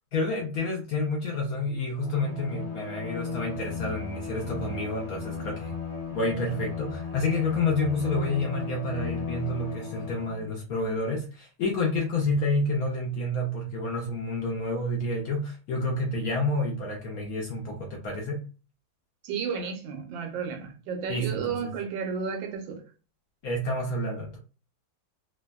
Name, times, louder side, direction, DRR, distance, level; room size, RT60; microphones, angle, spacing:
voice 1, 0.1-5.7 6.1-18.4 21.1-21.7 23.4-24.4, left 2 dB, 70° left, 0.9 m, -29 dB
Bowed string instrument, 1.9-10.5, left 5 dB, 45° left, 1.2 m, -35 dB
voice 2, 19.2-22.8, right 6 dB, 85° right, 1.4 m, -32 dB
3.3 x 2.0 x 2.2 m
omnidirectional pair, 2.1 m